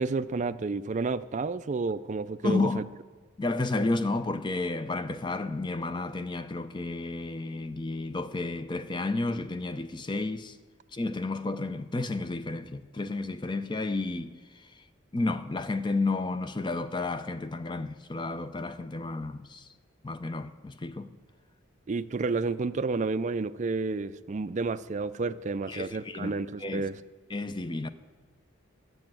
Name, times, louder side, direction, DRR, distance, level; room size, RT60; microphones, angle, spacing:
voice 1, 0.0-2.8 21.9-27.0, right 3 dB, 35° right, 0.4 m, -30 dB
voice 2, 2.4-2.8 3.4-10.6 10.9-14.7 15.1-19.7 20.0-21.1 25.7-26.9 27.3-27.9, left 3 dB, 25° left, 0.5 m, -32 dB
12.0 x 7.7 x 7.6 m
head